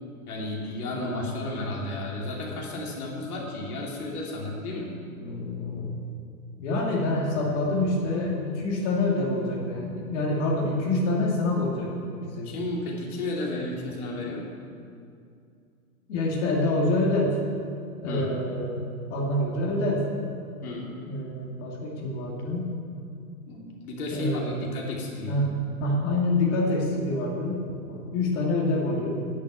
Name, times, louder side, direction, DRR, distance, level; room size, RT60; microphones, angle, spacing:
voice 1, 0.3-4.9 12.4-14.5 18.1-18.3 20.6-20.9 23.5-25.4 27.7-27.8, left 2 dB, 75° left, -2 dB, 2.7 m, -33 dB
voice 2, 0.9-1.3 5.2-5.9 6.6-11.9 12.2-12.5 16.1-17.4 18.0-18.8 19.1-20.1 21.1-22.7 24.1-24.6 25.3-25.5 25.8-27.6 27.9-29.1, left 2 dB, 50° left, -4 dB, 2.4 m, -26 dB
10.0 x 6.5 x 8.8 m, 2.4 s
hypercardioid pair, 165°, 44 cm